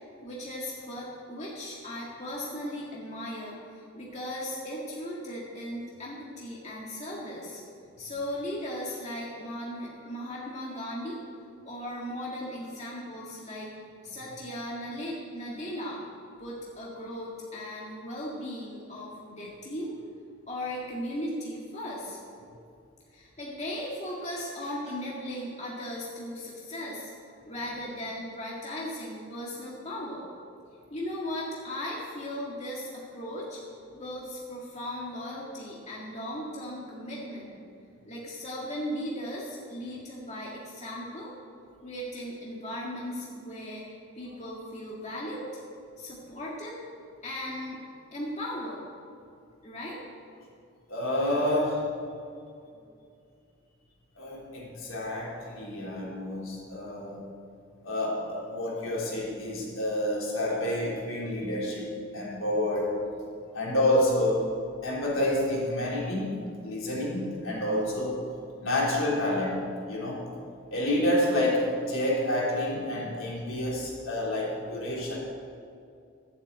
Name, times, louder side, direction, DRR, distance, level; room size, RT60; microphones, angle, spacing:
voice 1, 0.2-7.6 8.0-11.2 11.6-13.7 14.0-16.0 16.4-19.9 20.5-22.2 23.1-27.1 27.5-30.2 30.9-33.6 33.9-37.6 38.1-41.3 41.8-43.8 44.1-45.5 46.0-46.8 47.2-47.8 48.1-48.8 49.6-50.0, left 1 dB, 30° left, -5 dB, 1.9 m, -37 dB
voice 2, 50.9-51.9 54.2-57.2 57.8-63.0 63.5-64.5 64.8-66.3 66.6-68.2 68.6-69.6 69.9-70.2 70.7-75.2, left 1 dB, 75° left, -4 dB, 3.6 m, -28 dB
12.0 x 8.0 x 8.1 m, 2.4 s
head